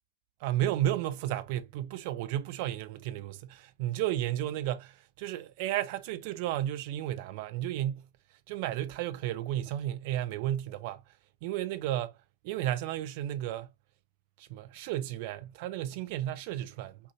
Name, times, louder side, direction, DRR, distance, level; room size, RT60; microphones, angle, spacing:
voice 1, 0.4-8.1 8.5-11.0 11.4-12.2 12.4-13.7 14.4-17.0, right 13 dB, 50° right, 0.7 m, -33 dB
5.6 x 2.8 x 2.8 m
figure-of-eight pair, 100°, 0 cm